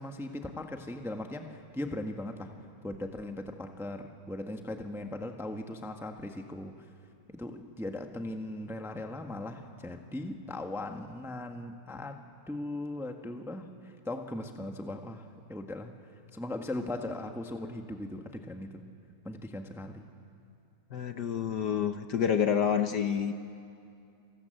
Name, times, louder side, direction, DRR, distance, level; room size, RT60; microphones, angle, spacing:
voice 1, 0.0-2.5 2.8-6.7 7.3-15.9 16.3-18.8 19.2-20.1, left 1 dB, ahead, 4 dB, 0.9 m, -39 dB
voice 2, 20.9-23.3, left 8 dB, 60° left, 8 dB, 1.3 m, -28 dB
29.0 x 25.0 x 7.8 m, 2.5 s
omnidirectional pair, 2.4 m